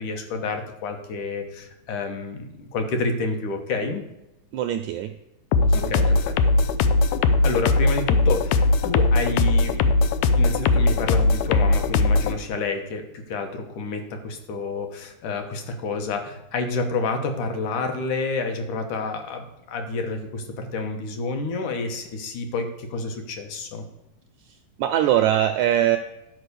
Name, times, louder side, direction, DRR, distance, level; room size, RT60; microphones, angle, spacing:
voice 1, 0.0-4.0 5.7-6.5 7.4-23.9, left 3 dB, 70° left, 5 dB, 2.5 m, -29 dB
voice 2, 4.5-5.1 5.6-6.2 24.5-26.0, right 11 dB, 85° right, 7 dB, 1.6 m, -23 dB
sound 1, 5.5-12.3, left 3 dB, 90° left, 1.5 m, -19 dB
11.0 x 4.7 x 6.8 m, 0.91 s
omnidirectional pair, 3.9 m